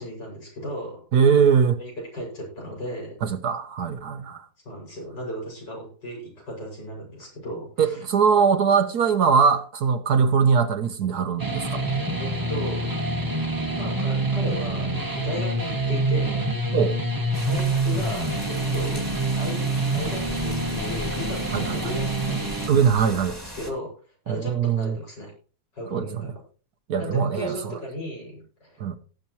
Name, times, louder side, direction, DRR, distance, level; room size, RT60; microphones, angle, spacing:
voice 1, 0.0-1.0 1.8-3.2 4.6-8.0 12.2-12.9 13.7-16.5 17.5-19.0 19.4-19.6 19.9-22.7 23.0-23.1 23.4-23.9 24.3-25.3 25.7-26.3 27.0-28.8, equal, 85° left, 6.8 m, -35 dB
voice 2, 1.1-1.8 3.2-4.4 7.8-11.8 16.7-16.9 21.5-21.8 22.7-23.3 24.3-25.0 25.9-26.3 26.9-27.5 28.8-29.0, right 6 dB, 65° right, 1.4 m, -21 dB
sound 1, 11.4-22.7, right 2 dB, 15° right, 1.0 m, -26 dB
sound 2, 17.3-23.7, left 1 dB, 10° left, 2.0 m, -38 dB
18.0 x 8.0 x 3.0 m
omnidirectional pair, 1.8 m